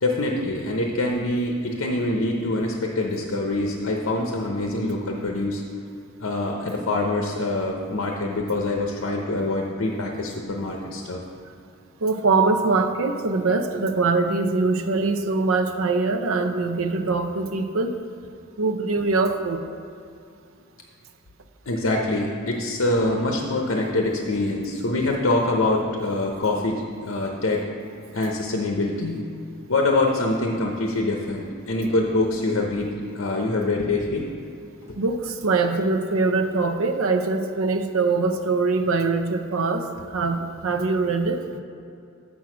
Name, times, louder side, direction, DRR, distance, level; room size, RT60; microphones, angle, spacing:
voice 1, 0.0-5.6 6.2-11.2 21.7-27.6 28.1-29.2 29.7-34.3 34.8-34.9, left 2 dB, 80° left, 1 dB, 0.8 m, -25 dB
voice 2, 12.0-17.9 18.6-19.6 35.0-41.5, right 3 dB, 90° right, 7 dB, 0.7 m, -23 dB
7.1 x 6.2 x 6.1 m, 2.5 s
head